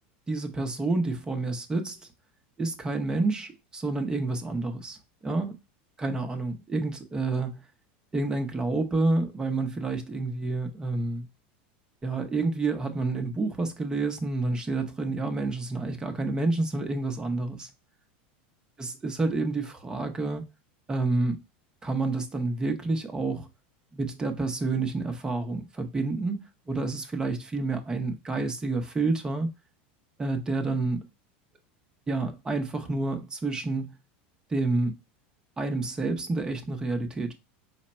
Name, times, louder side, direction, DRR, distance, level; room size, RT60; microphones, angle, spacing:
voice 1, 0.3-2.0 2.6-5.6 6.0-7.6 8.1-11.3 12.0-17.7 18.8-20.4 20.9-21.4 21.8-23.5 23.9-29.5 30.2-31.1 32.1-33.9 34.5-35.0 35.6-37.3, right 3 dB, 15° right, 0.7 m, -29 dB
5.0 x 2.1 x 4.1 m
supercardioid pair, 130°, 5 cm